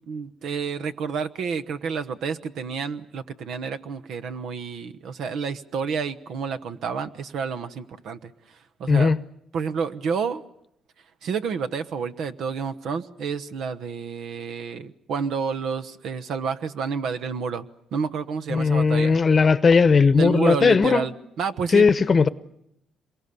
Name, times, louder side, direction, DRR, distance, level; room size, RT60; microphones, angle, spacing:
voice 1, 0.1-8.3 8.8-9.1 9.5-10.4 11.2-19.1 20.2-21.1 21.4-21.8, right 6 dB, 75° right, 10 dB, 1.1 m, -29 dB
voice 2, 8.9-9.2 18.5-21.1 21.7-22.3, left 5 dB, 40° left, 16 dB, 0.9 m, -18 dB
26.5 x 23.0 x 6.9 m, 0.76 s
cardioid pair, 90°, 0 cm